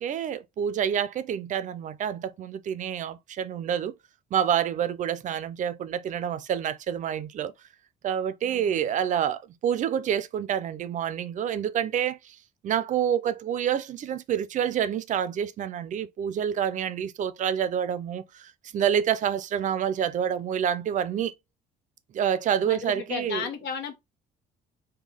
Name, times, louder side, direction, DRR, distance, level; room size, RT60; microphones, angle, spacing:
voice 1, 0.0-3.9 4.3-7.5 8.0-12.4 12.6-21.3 22.1-23.5, right 9 dB, 50° right, 0.4 m, -28 dB
voice 2, 8.4-8.9 22.7-23.9, left 7 dB, 80° left, 1.0 m, -34 dB
3.6 x 2.2 x 3.3 m
cardioid pair, 110°, 17 cm